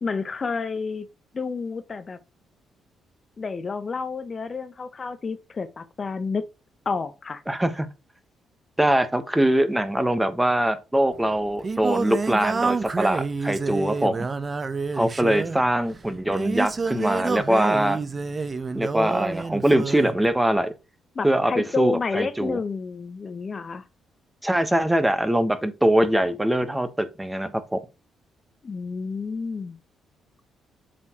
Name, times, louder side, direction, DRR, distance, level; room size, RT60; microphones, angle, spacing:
voice 1, 0.0-1.1 1.3-2.2 3.4-6.5 6.8-7.4 15.3-15.5 21.1-23.9 28.6-29.8, left 4 dB, 35° left, 0.8 m, -30 dB
voice 2, 7.5-7.9 8.8-14.3 14.9-18.0 18.7-20.7 21.2-22.6 24.4-27.8, right 1 dB, 10° right, 1.1 m, -22 dB
Singing, 11.1-20.2, right 4 dB, 30° right, 0.7 m, -28 dB
7.4 x 4.5 x 2.9 m
cardioid pair, 90°, 0 cm